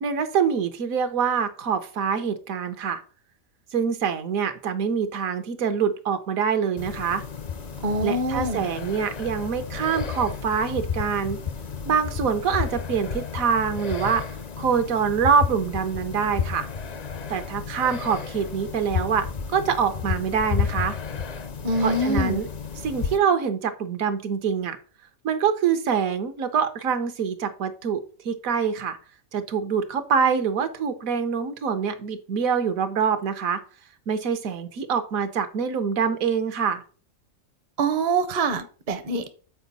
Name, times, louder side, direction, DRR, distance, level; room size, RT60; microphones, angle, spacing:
voice 1, 0.0-3.0 3.7-7.2 8.0-11.4 11.9-14.2 14.6-16.7 17.3-21.0 21.8-22.5 22.8-24.8 25.2-29.0 29.3-33.6 34.1-36.8, right 6 dB, 75° right, 1.2 m, -25 dB
sound 1, 6.8-23.2, left 6 dB, 55° left, 0.4 m, -32 dB
voice 2, 7.8-8.7 21.6-22.4 37.8-39.3, right 2 dB, 45° right, 0.6 m, -25 dB
7.1 x 4.6 x 4.0 m
omnidirectional pair, 1.5 m